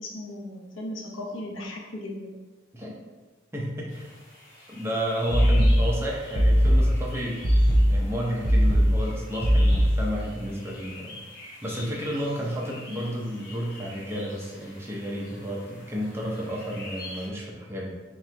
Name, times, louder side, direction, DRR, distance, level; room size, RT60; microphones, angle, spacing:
voice 1, 0.0-2.3, left 1 dB, 90° left, -1 dB, 0.8 m, -36 dB
voice 2, 3.5-4.1 4.7-7.4 7.9-17.9, equal, 15° right, -3 dB, 0.6 m, -32 dB
sound 1, 3.9-17.3, left 2 dB, 50° left, 1.1 m, -45 dB
sound 2, 5.3-10.3, equal, 55° right, 1.3 m, -20 dB
3.8 x 3.0 x 3.3 m, 1.3 s
head